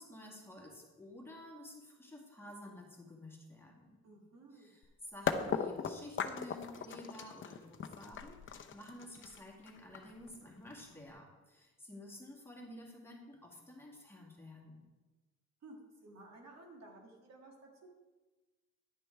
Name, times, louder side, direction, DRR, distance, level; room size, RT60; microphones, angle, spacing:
voice 1, 0.0-4.0 4.5-14.8, left 1 dB, 10° left, -2 dB, 2.1 m, -52 dB
voice 2, 4.0-4.7 15.6-17.9, right 2 dB, 60° right, 0 dB, 2.1 m, -55 dB
sound 1, 4.8-4.9 5.3-11.1, left 6 dB, 40° left, 0.7 m, -38 dB
10.0 x 6.1 x 4.6 m, 1.2 s
cardioid pair, 90°, 30 cm